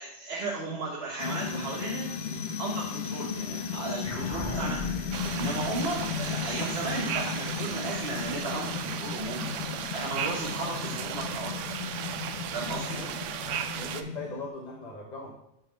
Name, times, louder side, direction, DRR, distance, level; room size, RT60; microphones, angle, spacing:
voice 1, 0.0-2.1 2.6-4.9 5.4-9.5 9.9-11.5 12.5-13.0, right 2 dB, 55° right, -4 dB, 1.3 m, -35 dB
sound 1, 1.2-14.5, left 6 dB, 65° left, 0.8 m, -35 dB
sound 2, 4.0-8.8, left 1 dB, 15° left, 1.3 m, -41 dB
sound 3, 5.1-14.0, right 9 dB, 80° right, 0.9 m, -35 dB
voice 2, 13.8-15.3, left 2 dB, 35° left, -1 dB, 1.0 m, -39 dB
9.1 x 4.1 x 5.1 m, 0.82 s
omnidirectional pair, 1.3 m